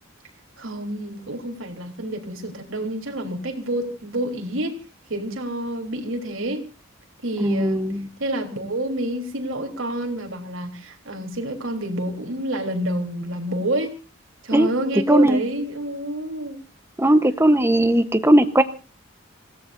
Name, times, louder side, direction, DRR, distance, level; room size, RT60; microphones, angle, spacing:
voice 1, 0.6-4.7 5.1-6.7 7.2-7.9 8.2-13.9 14.4-16.6, right 1 dB, 70° right, 3 dB, 3.5 m, -28 dB
voice 2, 7.4-8.1 14.5-14.7 15.1-15.4 17.0-18.6, right 1 dB, 10° right, 10 dB, 0.9 m, -17 dB
27.0 x 17.5 x 2.6 m, 0.33 s
head